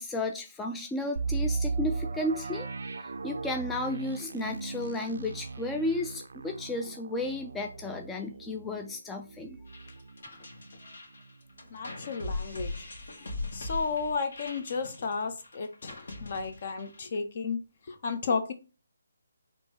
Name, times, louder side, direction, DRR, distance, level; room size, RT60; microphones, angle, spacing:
voice 1, 0.0-2.7 3.2-9.6, left 2 dB, 10° left, 0.3 m, -33 dB
sound 1, 1.2-10.9 11.2-11.3 11.8-12.1, right 4 dB, 70° right, 0.4 m, -37 dB
sound 2, 9.7-17.2, left 2 dB, 70° left, 1.7 m, -40 dB
voice 2, 11.7-12.9 13.2-18.5, left 4 dB, 45° left, 0.8 m, -33 dB
4.3 x 2.7 x 4.6 m
figure-of-eight pair, 155°, 0 cm